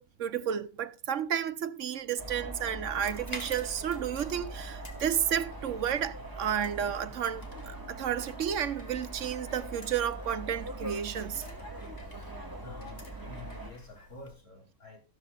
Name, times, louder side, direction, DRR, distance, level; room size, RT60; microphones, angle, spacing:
voice 1, 0.0-11.4, right 9 dB, 85° right, 1.2 m, -32 dB
sound 1, 2.2-13.7, right 1 dB, 15° right, 2.7 m, -42 dB
sound 2, 3.0-14.3, equal, 30° left, 2.5 m, -50 dB
voice 2, 12.6-15.0, left 3 dB, 90° left, 5.4 m, -48 dB
14.0 x 13.5 x 2.5 m
omnidirectional pair, 1.3 m